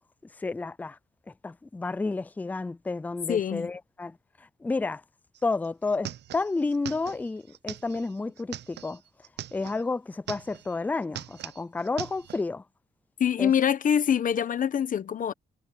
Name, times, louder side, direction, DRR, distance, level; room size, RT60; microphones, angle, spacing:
voice 1, 0.4-1.0 1.3-4.2 4.6-5.0 5.4-9.0 9.5-12.6 13.4-13.5, left 3 dB, 10° left, 0.4 m, -31 dB
voice 2, 3.3-3.7 13.2-15.3, left 8 dB, 50° left, 1.0 m, -25 dB
sound 1, 5.3-5.4 5.6-9.8 10.1-10.8 11.0-12.4, right 12 dB, 90° right, 0.7 m, -41 dB
wide cardioid pair, 150°, 17 cm